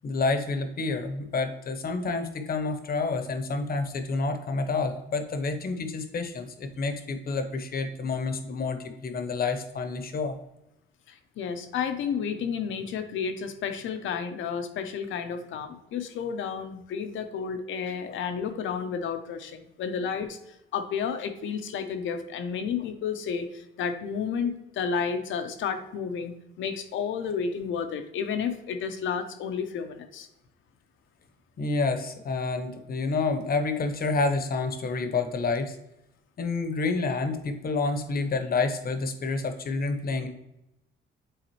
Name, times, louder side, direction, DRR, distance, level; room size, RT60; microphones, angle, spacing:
voice 1, 0.0-10.3 18.1-18.2 31.6-35.8 36.4-40.3, left 3 dB, 50° left, 8 dB, 0.9 m, -29 dB
voice 2, 11.1-30.3, left 6 dB, 75° left, 8 dB, 0.8 m, -31 dB
8.0 x 3.9 x 3.1 m, 0.87 s
cardioid pair, 90°, 20 cm